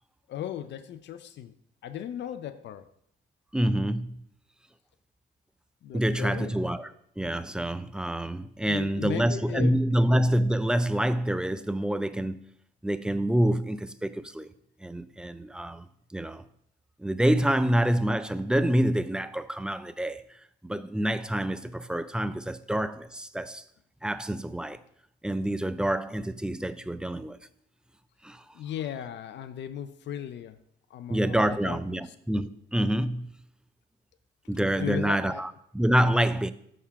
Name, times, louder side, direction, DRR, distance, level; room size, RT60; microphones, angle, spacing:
voice 1, 0.3-1.5 1.8-2.9 5.8-6.7 8.6-9.7 28.5-30.6 30.9-32.0 34.8-35.4, left 10 dB, 65° left, 0.5 m, -36 dB
voice 2, 3.5-4.2 5.9-12.4 12.8-14.5 14.8-16.4 17.0-20.2 20.6-23.6 24.0-24.8 25.2-27.4 28.2-28.4 31.1-33.3 34.5-36.5, right 1 dB, 5° right, 0.3 m, -27 dB
6.6 x 3.6 x 5.7 m
cardioid pair, 90°, 20 cm